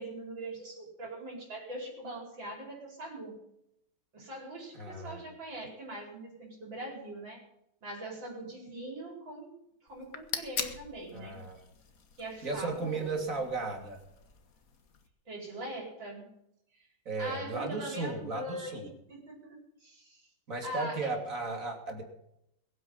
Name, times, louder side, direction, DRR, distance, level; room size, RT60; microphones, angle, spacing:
voice 1, 0.0-3.4 4.1-7.4 7.8-9.5 9.8-11.4 12.2-13.1 15.3-16.3 16.7-16.9 17.2-20.3 20.6-21.1, right 1 dB, 65° right, 0 dB, 5.6 m, -42 dB
voice 2, 4.7-5.2 11.1-11.6 12.4-14.0 17.1-18.9 20.5-22.0, right 3 dB, 40° right, 2 dB, 3.5 m, -35 dB
sound 1, 9.9-15.1, left 6 dB, 50° left, 1.7 m, -43 dB
21.5 x 9.5 x 5.7 m, 0.79 s
omnidirectional pair, 2.2 m